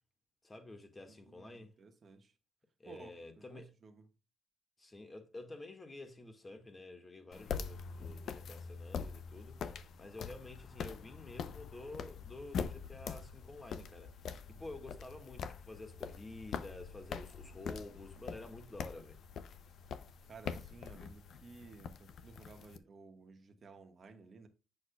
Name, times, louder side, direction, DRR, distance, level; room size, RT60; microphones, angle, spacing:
voice 1, 0.4-1.7 2.8-3.7 4.8-9.6 10.0-19.2, left 2 dB, 20° left, 1.6 m, -50 dB
voice 2, 1.2-2.3 2.8-4.0 14.5-14.6 20.2-24.5, right 4 dB, 45° right, 1.4 m, -56 dB
sound 1, 7.3-22.8, left 6 dB, 65° left, 0.5 m, -44 dB
7.9 x 6.3 x 2.2 m
cardioid pair, 90°, 0 cm